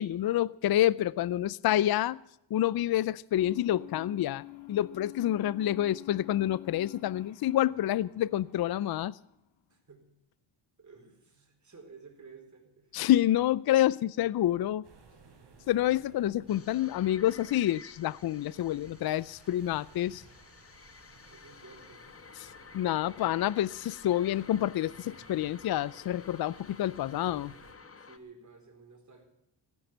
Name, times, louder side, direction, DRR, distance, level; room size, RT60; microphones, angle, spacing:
voice 1, 0.0-2.2 2.5-9.2 12.9-14.8 15.7-20.2 22.4-27.5, left 13 dB, 55° left, 0.5 m, -28 dB
sound 1, 3.4-9.7, left 15 dB, 70° left, 2.1 m, -49 dB
voice 2, 9.7-10.0 10.8-13.0 21.3-22.1 27.8-29.2, right 4 dB, 40° right, 4.4 m, -53 dB
sound 2, 14.8-27.7, right 4 dB, 60° right, 4.0 m, -59 dB
sound 3, 16.5-28.2, left 5 dB, 30° left, 1.2 m, -52 dB
16.0 x 10.5 x 7.9 m
cardioid pair, 100°, 47 cm